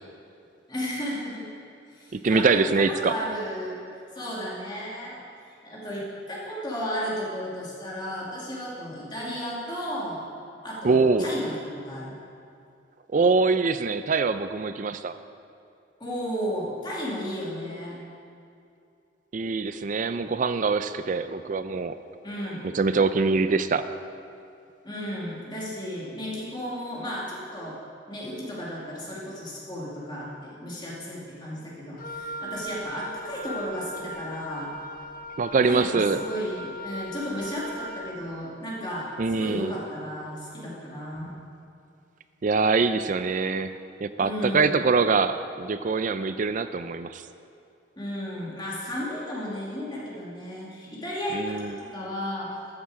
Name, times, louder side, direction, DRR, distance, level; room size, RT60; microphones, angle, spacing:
voice 1, 0.7-1.4 1.9-3.8 4.1-5.2 5.6-10.2 10.6-12.2 16.0-18.0 22.2-22.6 24.8-27.8 28.1-34.7 35.7-39.1 39.3-41.3 44.2-44.8 48.0-52.5, equal, 25° left, -6 dB, 2.4 m, -34 dB
voice 2, 2.1-3.1 10.8-11.3 13.1-15.2 19.3-22.0 22.7-23.9 35.4-36.2 39.2-39.7 42.4-47.2 51.3-51.8, right 4 dB, 45° right, 12 dB, 0.4 m, -24 dB
Wind instrument woodwind instrument, 32.0-38.2, equal, 50° left, 0.8 m, -38 dB
13.5 x 9.7 x 4.8 m, 2.5 s
head